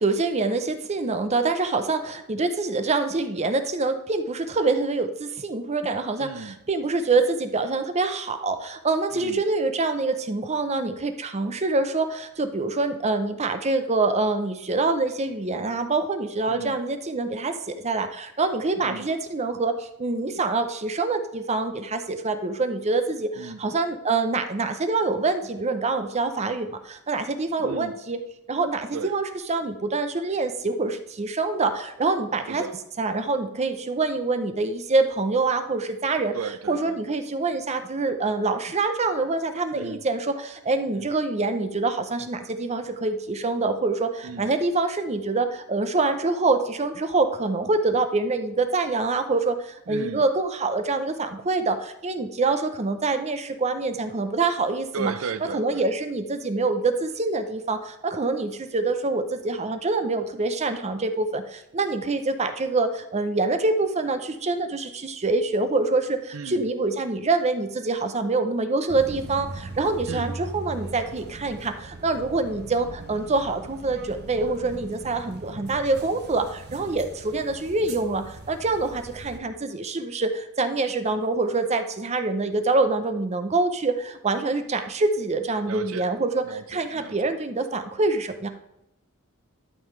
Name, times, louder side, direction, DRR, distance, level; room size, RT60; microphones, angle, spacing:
voice 1, 0.0-28.2 28.5-32.7 33.0-36.3 36.7-55.1 55.5-88.5, right 3 dB, 30° right, 0.6 m, -25 dB
voice 2, 6.2-6.6 9.1-9.4 16.5-16.8 18.8-19.1 23.4-23.6 27.6-27.9 28.9-29.1 32.5-32.8 36.3-36.9 39.7-40.0 40.9-41.1 44.2-44.5 49.9-50.2 54.9-55.8 66.3-66.7 70.1-70.4 85.7-86.1 86.4-87.3, right 5 dB, 75° right, 0.5 m, -35 dB
sound 1, 68.9-79.4, right 2 dB, 50° right, 0.9 m, -40 dB
12.5 x 5.4 x 3.2 m
head